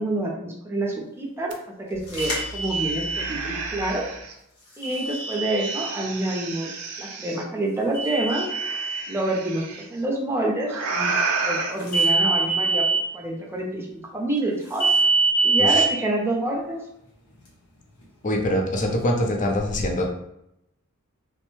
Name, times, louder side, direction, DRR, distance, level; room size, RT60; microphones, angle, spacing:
voice 1, 0.0-4.1 4.8-8.5 9.1-9.6 9.9-14.9 15.4-16.8, right 1 dB, 10° right, -2 dB, 0.6 m, -27 dB
sound 1, 1.5-1.6 1.9-4.3 5.1-7.4 8.3-9.8 10.7-11.7, right 4 dB, 85° right, 0.5 m, -31 dB
sound 2, 2.1-3.3 4.8-5.9 7.9-9.0 11.9-13.0 14.8-15.9, right 4 dB, 75° left, 0.9 m, -23 dB
voice 2, 18.2-20.1, left 1 dB, 35° left, 1 dB, 0.5 m, -24 dB
3.1 x 2.1 x 3.1 m, 0.79 s
head